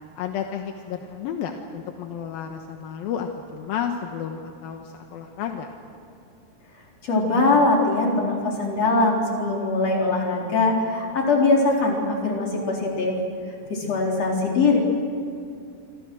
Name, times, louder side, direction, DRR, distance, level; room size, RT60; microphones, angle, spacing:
voice 1, 0.2-5.7 13.8-14.1, left 8 dB, 80° left, 4 dB, 2.9 m, -32 dB
voice 2, 7.0-13.2 13.7-14.8, left 3 dB, 45° left, -1 dB, 5.0 m, -21 dB
27.5 x 26.0 x 6.3 m, 2.5 s
omnidirectional pair, 4.2 m